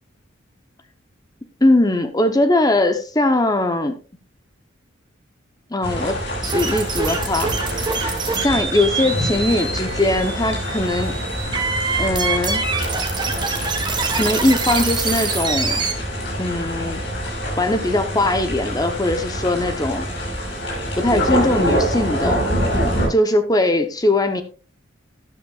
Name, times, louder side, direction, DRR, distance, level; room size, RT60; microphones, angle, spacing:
voice 1, 1.6-4.0 5.7-6.2 6.4-7.5 8.3-11.1 12.0-12.6 14.1-15.8 16.4-17.0 17.6-20.0 21.0-22.4 23.1-24.4, left 2 dB, 20° left, 8 dB, 0.8 m, -20 dB
sound 1, 5.8-23.1, equal, 60° left, 6.7 m, -25 dB
sound 2, 6.4-15.9, right 4 dB, 20° right, 1.5 m, -25 dB
13.0 x 11.5 x 2.4 m, 0.36 s
head